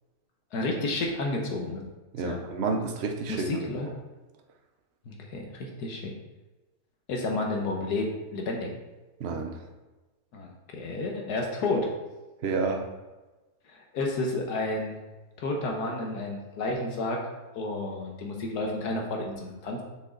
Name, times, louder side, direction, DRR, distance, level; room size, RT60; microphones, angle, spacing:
voice 1, 0.5-1.8 2.2-2.4 3.3-3.9 5.1-6.1 7.1-8.7 10.3-11.9 13.7-15.0 15.4-17.2 17.6-19.8, left 2 dB, 80° left, 1 dB, 1.7 m, -31 dB
voice 2, 2.1-3.5 9.2-9.6 12.4-12.9, right 4 dB, 50° right, 4 dB, 0.9 m, -30 dB
6.5 x 6.2 x 3.9 m, 1.1 s
omnidirectional pair, 1.7 m